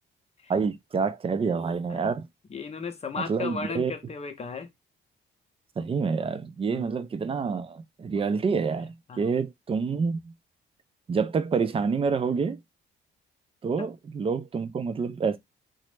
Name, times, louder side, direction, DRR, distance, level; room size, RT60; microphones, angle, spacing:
voice 1, 0.5-2.3 3.3-3.9 5.8-10.3 11.1-12.6 13.6-15.4, right 5 dB, 30° right, 0.4 m, -27 dB
voice 2, 2.5-4.7 6.7-6.9 9.1-9.3 13.8-13.9, left 5 dB, 30° left, 0.7 m, -35 dB
2.9 x 2.0 x 3.2 m
cardioid pair, 90°, 20 cm